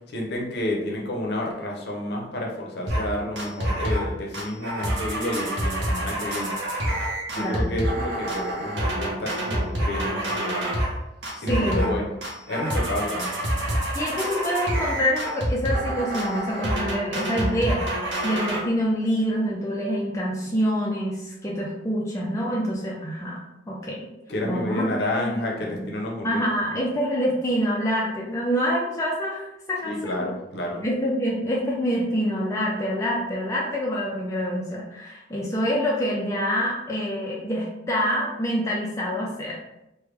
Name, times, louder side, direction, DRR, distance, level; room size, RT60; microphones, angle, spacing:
voice 1, 0.1-6.6 7.3-10.7 11.4-12.1 12.5-13.4 24.3-26.4 29.8-30.8, left 1 dB, 55° left, -1 dB, 0.7 m, -30 dB
sound 1, 2.9-3.1 3.4-4.1 4.3-10.9 11.2-12.0 12.2-18.6, right 1 dB, 75° right, 0.8 m, -27 dB
voice 2, 7.4-7.8 11.5-11.9 13.9-23.4 23.7-24.1 24.4-25.4 25.6-25.9 26.2-30.3 30.8-39.6, equal, 15° left, -4 dB, 0.4 m, -26 dB
3.2 x 2.2 x 3.2 m, 0.91 s
head